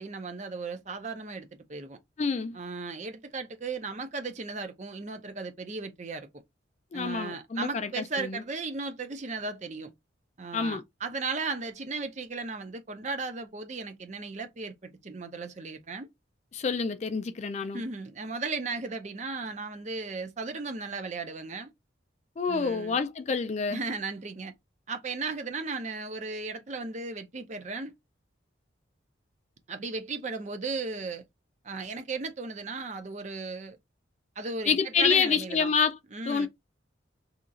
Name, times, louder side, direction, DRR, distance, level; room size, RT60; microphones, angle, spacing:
voice 1, 0.0-2.0 2.5-6.3 6.9-9.9 10.4-16.1 17.7-21.7 22.5-23.0 23.7-24.5 24.9-27.9 29.7-31.2 31.6-33.8 34.4-35.7 36.1-36.5, right 3 dB, 35° right, 0.5 m, -36 dB
voice 2, 2.2-2.6 6.9-8.4 10.5-10.8 16.5-17.8 22.4-23.8 34.7-36.0 36.3-36.5, left 5 dB, 35° left, 0.3 m, -27 dB
2.9 x 2.4 x 3.7 m
head